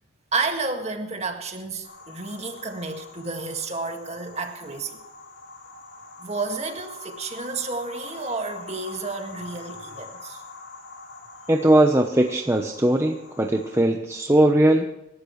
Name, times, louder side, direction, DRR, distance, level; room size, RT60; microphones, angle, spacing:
voice 1, 0.3-5.0 6.2-10.4, right 3 dB, 30° right, 1.9 m, -31 dB
sound 1, 1.8-13.8, left 3 dB, 60° left, 3.4 m, -44 dB
voice 2, 11.5-14.9, right 1 dB, 15° right, 0.8 m, -19 dB
26.5 x 13.0 x 3.2 m
head